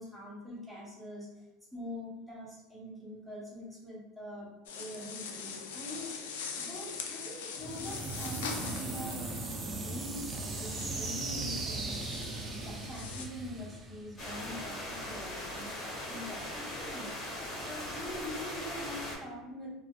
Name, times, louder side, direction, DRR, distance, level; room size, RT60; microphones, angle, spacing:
voice 1, 0.0-4.5 4.7-6.2 6.5-12.0 12.4-17.3 17.5-19.8, left 1 dB, 5° right, -6 dB, 1.2 m, -44 dB
sound 1, 4.7-13.3, left 6 dB, 85° left, 0.3 m, -43 dB
sound 2, 7.6-14.5, right 3 dB, 25° right, 0.4 m, -38 dB
sound 3, 14.2-19.1, left 1 dB, 35° left, 1.3 m, -39 dB
2.7 x 2.2 x 2.4 m, 1.0 s
supercardioid pair, 100°, 0 cm